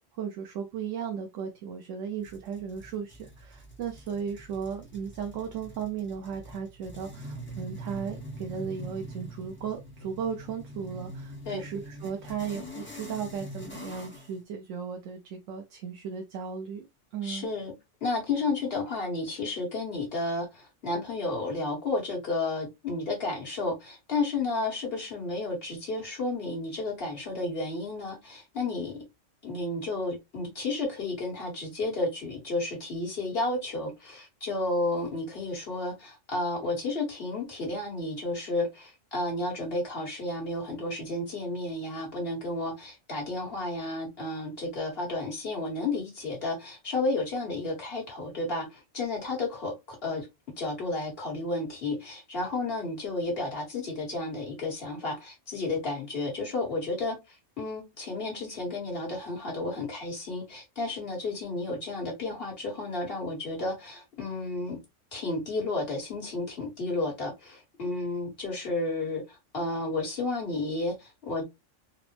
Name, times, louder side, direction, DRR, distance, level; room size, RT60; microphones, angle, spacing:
voice 1, 0.1-16.9 17.1-17.5, right 7 dB, 85° right, 1.0 m, -36 dB
sound 1, 2.2-14.4, right 1 dB, 10° left, 0.7 m, -44 dB
voice 2, 17.2-17.7 18.0-29.0 29.4-50.3 50.6-64.8 65.1-71.4, left 2 dB, 50° left, 1.6 m, -32 dB
4.0 x 2.0 x 3.0 m
omnidirectional pair, 1.3 m